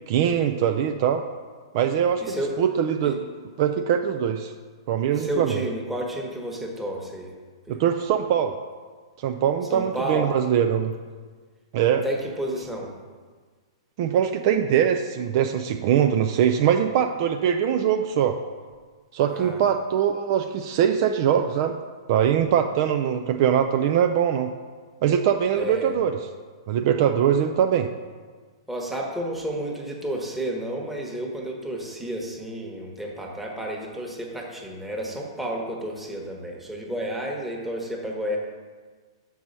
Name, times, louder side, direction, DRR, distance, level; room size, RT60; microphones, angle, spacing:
voice 1, 0.1-1.2 1.7-3.2 3.6-4.5 4.9-5.6 7.7-8.5 9.2-10.9 11.7-12.0 14.0-18.4 19.1-21.8 22.1-24.5 25.0-26.1 26.7-27.9, right 9 dB, 50° right, 5 dB, 0.4 m, -22 dB
voice 2, 2.2-2.5 3.0-3.1 5.1-7.3 7.6-7.8 9.7-10.3 12.0-12.9 19.3-19.7 25.5-25.9 28.7-38.4, right 1 dB, 5° right, -1 dB, 1.2 m, -31 dB
6.1 x 4.7 x 5.4 m, 1.5 s
hypercardioid pair, 130°, 3 cm